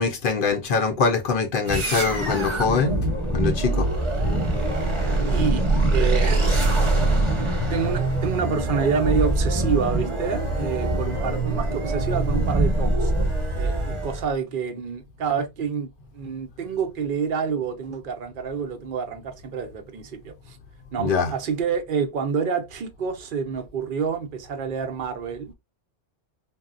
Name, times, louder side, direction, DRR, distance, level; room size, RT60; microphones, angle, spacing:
voice 1, 0.0-3.0 3.3-3.9 21.0-21.3, left 5 dB, 60° left, 0.6 m, -23 dB
sound 1, 1.7-14.3, right 2 dB, 30° right, 0.9 m, -23 dB
voice 2, 5.3-5.6 5.9-7.0 7.7-13.1 13.5-15.9 16.1-20.6 20.9-25.5, right 6 dB, 55° right, 0.7 m, -28 dB
3.5 x 2.0 x 2.4 m
omnidirectional pair, 1.1 m